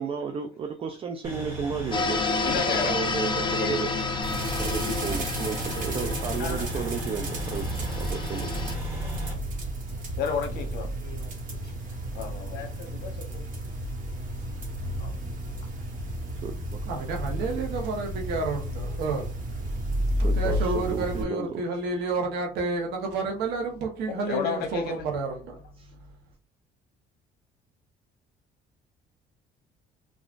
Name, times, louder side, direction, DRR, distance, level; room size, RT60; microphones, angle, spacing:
voice 1, 0.0-3.9 4.6-8.6 16.4-16.9 20.2-21.6 25.8-25.9, right 6 dB, 35° right, 0.3 m, -33 dB
sound 1, 1.2-9.3, left 2 dB, 15° right, 1.5 m, -37 dB
sound 2, 1.9-8.8, left 3 dB, 30° left, 0.4 m, -31 dB
voice 2, 2.4-2.9 3.5-3.7 6.4-6.7 10.2-11.6 12.1-13.5 15.0-15.1 24.3-25.0, left 6 dB, 70° left, 0.9 m, -33 dB
sound 3, 4.2-21.2, right 1 dB, 50° right, 1.1 m, -32 dB
voice 3, 16.8-19.3 20.2-25.6, right 3 dB, 80° right, 0.9 m, -30 dB
3.6 x 2.4 x 2.4 m
cardioid pair, 110°, 17 cm